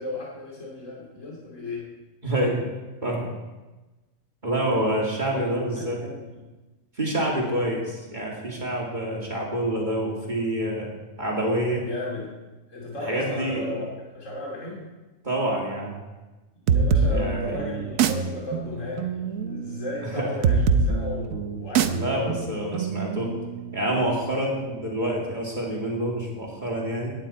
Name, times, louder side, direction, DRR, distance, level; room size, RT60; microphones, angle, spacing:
voice 1, 0.0-1.8 5.3-5.5 5.8-6.3 7.2-7.6 11.8-12.3 12.7-14.9 16.6-22.5, left 2 dB, 65° left, -3 dB, 3.0 m, -35 dB
voice 2, 2.2-2.6 3.0-3.3 4.4-6.0 7.0-10.9 11.2-11.8 13.1-13.6 15.2-16.0 17.1-17.5 20.1-20.3 21.9-23.3 23.7-27.1, right 1 dB, 35° right, -3 dB, 2.8 m, -27 dB
sound 1, 16.7-24.1, right 5 dB, 80° right, 1.2 m, -25 dB
17.0 x 10.5 x 4.4 m, 1.2 s
omnidirectional pair, 1.4 m